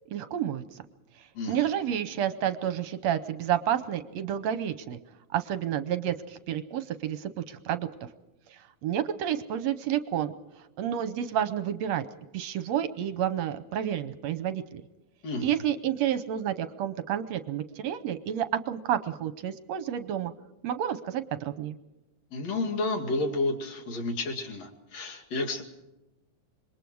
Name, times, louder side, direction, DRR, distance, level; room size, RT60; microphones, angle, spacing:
voice 1, 0.1-0.8 1.5-5.0 5.3-7.9 8.5-10.3 10.8-12.0 12.3-14.8 15.4-20.3 20.6-21.8, right 10 dB, 70° right, 12 dB, 1.9 m, -30 dB
voice 2, 15.2-15.5 22.3-25.6, left 2 dB, 60° left, 4 dB, 3.4 m, -31 dB
26.5 x 22.5 x 4.7 m, 0.97 s
omnidirectional pair, 3.4 m